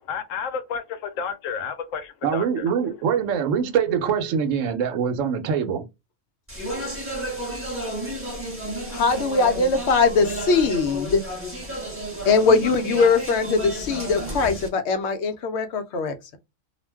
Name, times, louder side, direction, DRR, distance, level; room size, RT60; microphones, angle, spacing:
voice 1, 0.1-3.0, left 6 dB, 85° left, 1.0 m, -32 dB
voice 2, 2.2-5.9, right 7 dB, 80° right, 1.0 m, -24 dB
Speech, 6.5-14.7, right 1 dB, 10° right, 0.9 m, -32 dB
voice 3, 8.9-11.2 12.2-16.4, left 4 dB, 70° left, 0.8 m, -21 dB
2.4 x 2.2 x 3.3 m
omnidirectional pair, 1.3 m